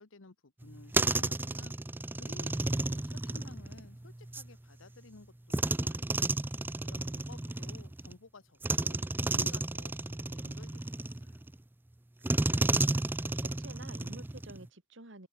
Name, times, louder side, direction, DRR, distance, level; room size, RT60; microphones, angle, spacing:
voice 1, 0.0-1.7 2.1-6.2 6.8-9.9 10.3-11.4, left 3 dB, 80° left, 1.2 m, -54 dB
sound 1, 0.6-4.5 5.5-8.1 8.6-11.5 12.2-14.7, right 2 dB, 10° right, 0.4 m, -32 dB
voice 2, 12.4-15.3, right 2 dB, 65° right, 2.7 m, -51 dB
open air
head